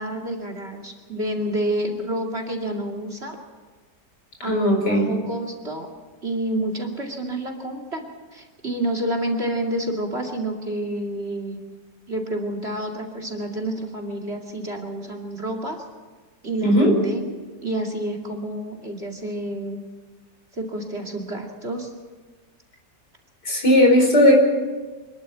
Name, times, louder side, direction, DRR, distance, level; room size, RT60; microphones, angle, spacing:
voice 1, 0.0-3.4 4.4-5.9 6.2-11.6 12.1-15.8 16.4-17.3 17.6-19.8 20.5-21.9, right 1 dB, 35° right, 4 dB, 2.7 m, -29 dB
voice 2, 4.4-5.1 16.6-16.9 23.5-24.4, equal, 70° left, 2 dB, 5.2 m, -17 dB
26.5 x 11.5 x 8.5 m, 1.3 s
omnidirectional pair, 1.9 m